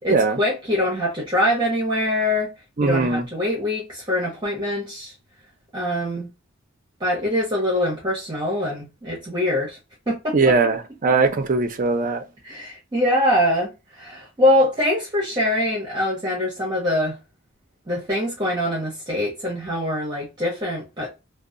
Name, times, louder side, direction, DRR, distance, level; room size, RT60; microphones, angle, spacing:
voice 1, 0.0-2.5 2.8-5.1 5.7-6.3 7.0-9.8 10.1-10.4 11.1-11.2 12.4-17.2 17.9-21.1, left 1 dB, 20° right, 0.9 m, -23 dB
voice 2, 2.8-3.2 10.3-12.2, right 4 dB, 40° right, 0.5 m, -20 dB
2.7 x 2.0 x 2.4 m
head